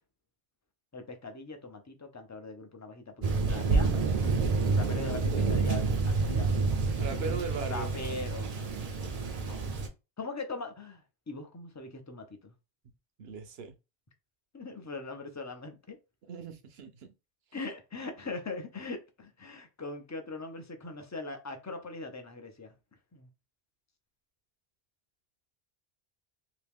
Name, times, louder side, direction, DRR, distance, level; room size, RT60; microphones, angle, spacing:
voice 1, 0.9-4.0 4.7-6.5 7.1-7.3 7.7-8.6 9.5-9.7 10.2-12.5 14.5-16.0 17.5-22.7 23.1-23.3, left 3 dB, 20° left, 0.5 m, -41 dB
Thunder, 3.2-9.9, right 4 dB, 45° right, 0.6 m, -28 dB
voice 2, 7.0-7.9 13.2-13.7 16.3-17.1, right 4 dB, 70° right, 0.9 m, -38 dB
2.9 x 2.8 x 3.5 m
omnidirectional pair, 1.1 m